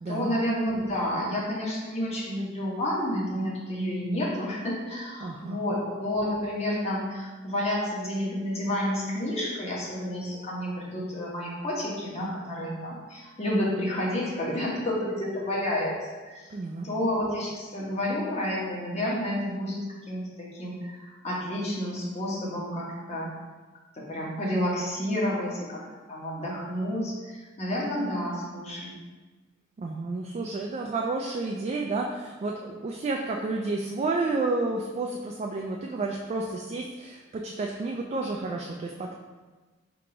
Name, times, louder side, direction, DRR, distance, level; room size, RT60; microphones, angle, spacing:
voice 1, 0.1-15.9 16.3-16.5 16.8-23.3 23.9-25.8 26.1-29.0, left 1 dB, 35° left, -5 dB, 1.1 m, -30 dB
voice 2, 5.2-5.6 16.5-16.9 29.8-39.1, right 3 dB, 35° right, 0 dB, 0.3 m, -31 dB
3.7 x 2.9 x 4.8 m, 1.3 s
head